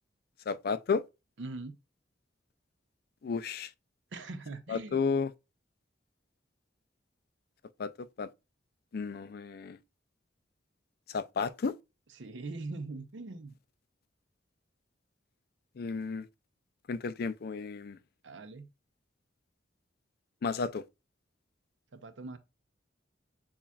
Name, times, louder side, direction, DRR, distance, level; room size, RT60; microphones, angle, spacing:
voice 1, 0.5-1.0 3.2-3.7 4.7-5.3 7.8-8.3 8.9-9.8 11.1-11.8 15.8-16.3 16.9-18.0 20.4-20.8, left 5 dB, 55° left, 0.4 m, -32 dB
voice 2, 1.4-1.8 4.1-5.2 12.1-13.6 18.2-18.7 21.9-22.4, right 3 dB, 75° right, 0.7 m, -42 dB
7.0 x 2.4 x 2.3 m
head